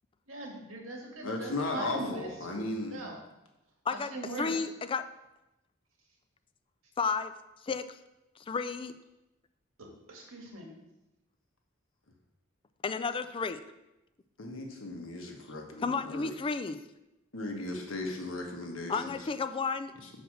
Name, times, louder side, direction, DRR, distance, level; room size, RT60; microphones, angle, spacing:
voice 1, 0.3-2.3 2.9-3.2 3.9-4.7 9.8-10.7, right 2 dB, 85° right, 1 dB, 1.8 m, -41 dB
voice 2, 1.2-3.0 14.4-16.3 17.3-19.3 20.0-20.1, left 2 dB, 70° left, 2 dB, 1.4 m, -36 dB
voice 3, 4.4-5.0 7.0-7.3 7.6-8.0 8.5-8.9 12.8-13.6 15.8-16.8 18.9-20.0, left 5 dB, 25° left, 11 dB, 0.3 m, -32 dB
6.4 x 4.8 x 6.3 m, 0.94 s
head